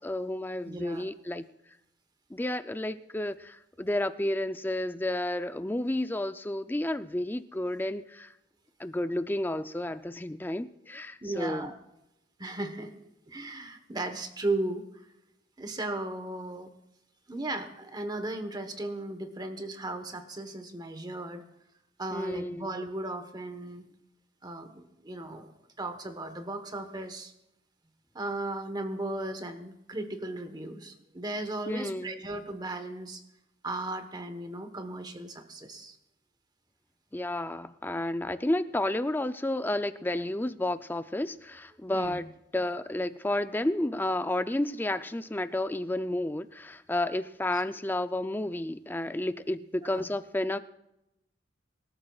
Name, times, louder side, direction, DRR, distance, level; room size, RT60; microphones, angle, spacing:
voice 1, 0.0-1.5 2.3-8.3 8.8-11.7 22.1-22.7 31.7-32.2 37.1-42.3 42.5-50.6, left 1 dB, 10° left, 11 dB, 0.4 m, -31 dB
voice 2, 0.6-1.0 11.2-11.7 12.4-12.9 13.3-15.1 15.6-16.7 17.3-21.4 22.0-23.9 24.4-25.5 25.8-27.3 28.1-33.2 33.6-36.0 41.9-42.2 49.8-50.0, right 2 dB, 25° right, 8 dB, 1.2 m, -36 dB
25.5 x 13.0 x 2.4 m, 0.89 s
head